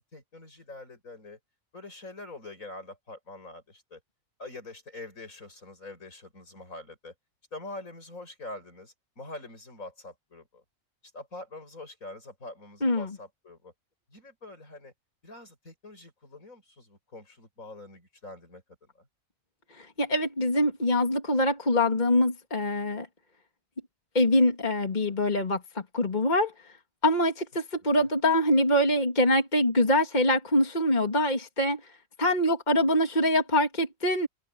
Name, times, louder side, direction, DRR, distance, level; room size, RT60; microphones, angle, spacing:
voice 1, 0.0-1.4 1.7-4.0 4.4-7.1 7.5-10.6 11.1-13.7 14.1-14.9 15.2-19.1 27.8-28.1, left 2 dB, 75° left, 7.8 m, -44 dB
voice 2, 19.8-23.1 24.1-26.5 27.0-31.8 32.2-34.3, left 1 dB, 30° left, 2.7 m, -24 dB
omnidirectional pair, 1.4 m